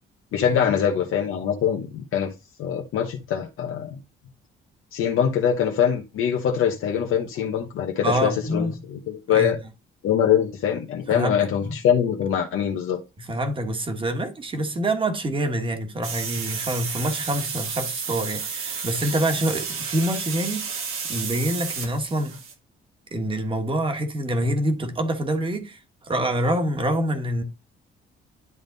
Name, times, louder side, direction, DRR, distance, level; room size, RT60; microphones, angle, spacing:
voice 1, 0.3-2.3 2.6-3.9 4.9-9.6 10.0-13.0, left 8 dB, 80° left, 1.1 m, -23 dB
voice 2, 8.0-8.8 9.3-9.5 11.1-11.8 13.2-22.4 23.1-27.4, right 1 dB, 25° right, 1.5 m, -26 dB
sound 1, 16.0-22.5, right 6 dB, 90° right, 1.7 m, -31 dB
11.0 x 3.7 x 4.0 m
cardioid pair, 165°, 21 cm